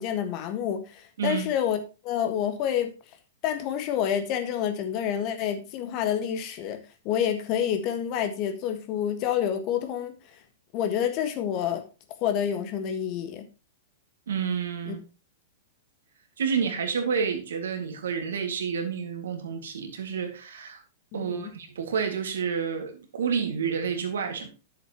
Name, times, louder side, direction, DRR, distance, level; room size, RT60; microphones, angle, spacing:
voice 1, 0.0-1.8 2.0-2.9 3.4-6.8 7.0-10.1 10.7-11.8 12.2-13.5 14.9-15.0 21.1-21.5, left 9 dB, 40° left, 1.6 m, -28 dB
voice 2, 14.3-15.0 16.4-20.8 21.1-24.5, right 6 dB, 70° right, 2.1 m, -29 dB
10.5 x 7.8 x 3.0 m
figure-of-eight pair, 100°, 0 cm